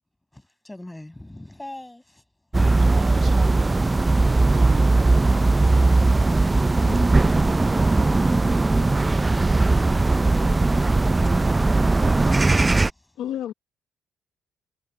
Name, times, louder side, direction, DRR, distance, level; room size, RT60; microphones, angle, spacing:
voice 1, 0.3-2.8 9.6-13.2, left 1 dB, 10° left, 7.7 m, -45 dB
sound 1, 2.5-12.9, right 2 dB, 20° right, 0.3 m, -19 dB
voice 2, 2.8-3.9 4.2-5.1, right 6 dB, 50° right, 1.2 m, -38 dB
voice 3, 13.2-13.5, left 11 dB, 80° left, 0.8 m, -31 dB
cardioid pair, 90°, 0 cm